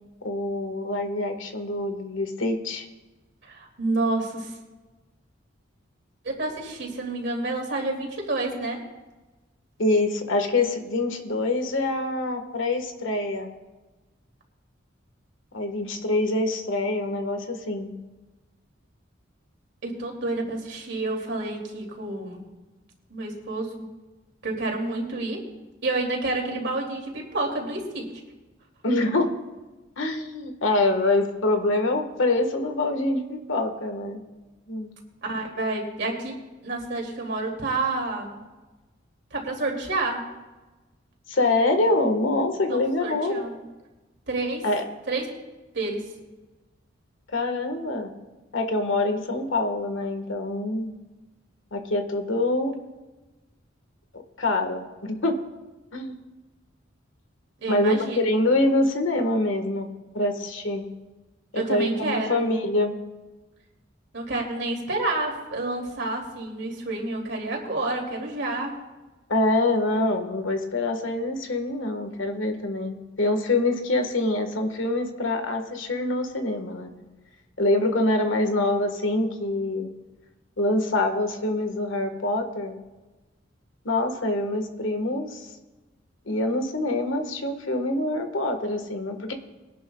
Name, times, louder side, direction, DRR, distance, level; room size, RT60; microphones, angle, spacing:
voice 1, 0.2-2.8 9.8-13.5 15.5-17.9 28.8-29.3 30.0-34.2 34.7-34.9 41.3-43.4 44.6-44.8 47.3-48.1 48.5-50.9 51.7-52.8 54.4-55.4 55.9-56.2 57.7-59.9 60.1-60.9 61.5-62.9 69.3-76.9 77.6-79.9 80.6-82.8 83.8-85.5 86.3-89.3, left 2 dB, 80° left, 5 dB, 1.6 m, -25 dB
voice 2, 3.4-4.5 6.2-8.8 19.8-22.4 23.1-23.8 24.4-25.4 25.8-28.1 35.2-36.3 36.6-38.4 39.3-40.2 42.7-43.6 44.3-44.7 45.1-45.3 45.7-46.1 57.6-58.2 61.5-62.4 64.1-68.7, right 2 dB, 60° right, 0 dB, 2.7 m, -29 dB
22.0 x 11.0 x 2.3 m, 1.2 s
head